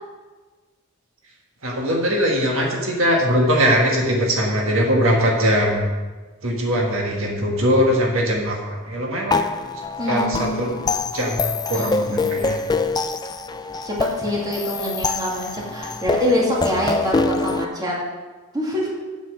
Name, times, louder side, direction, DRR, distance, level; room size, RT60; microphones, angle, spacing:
voice 1, 1.6-5.8 6.4-9.5 10.1-10.8 11.1-12.6, equal, 65° right, -1 dB, 1.8 m, -21 dB
sound 1, 9.3-17.6, left 3 dB, 20° left, 0.4 m, -25 dB
voice 2, 10.0-10.9 11.7-12.5 13.8-18.0 18.5-18.9, equal, 20° right, -4 dB, 2.3 m, -25 dB
8.3 x 7.3 x 7.6 m, 1.3 s
head